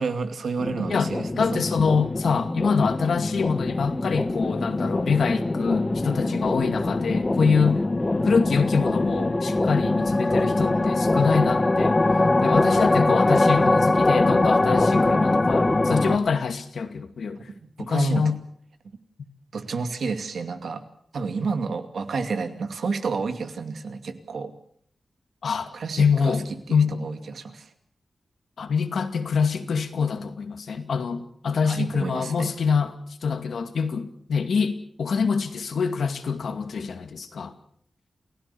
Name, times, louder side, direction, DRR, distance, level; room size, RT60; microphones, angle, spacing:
voice 1, 0.0-1.6 17.5-18.2 19.5-20.8 21.1-24.5 25.7-26.4 26.7-27.7 31.7-32.5, right 4 dB, 75° right, 7 dB, 2.4 m, -30 dB
sound 1, 0.6-16.2, left 2 dB, 20° left, 1.1 m, -23 dB
voice 2, 1.4-7.8 8.2-12.0 12.4-17.4 17.8-18.4 25.4-25.7 26.0-26.4 26.7-27.1 28.6-37.5, left 5 dB, 75° left, 7 dB, 2.3 m, -25 dB
29.0 x 16.5 x 7.0 m, 0.66 s
wide cardioid pair, 180°, 0 cm